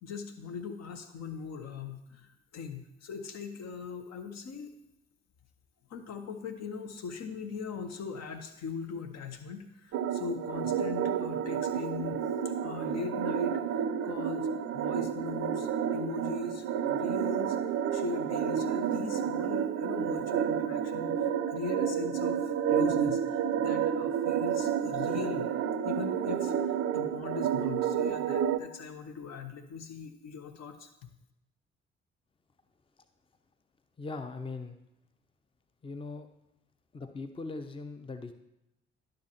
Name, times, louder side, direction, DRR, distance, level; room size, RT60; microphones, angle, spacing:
voice 1, 0.0-4.7 5.9-12.2 12.6-14.5 14.7-17.6 17.9-21.2 21.5-25.5 25.8-30.9, left 5 dB, 55° left, 7 dB, 1.0 m, -40 dB
sound 1, 9.9-28.6, right 8 dB, 50° right, 0.5 m, -30 dB
voice 2, 34.0-34.8 35.8-36.3 36.9-38.3, left 3 dB, 15° left, 9 dB, 0.7 m, -40 dB
11.5 x 6.5 x 2.9 m, 0.87 s
figure-of-eight pair, 40°, 31 cm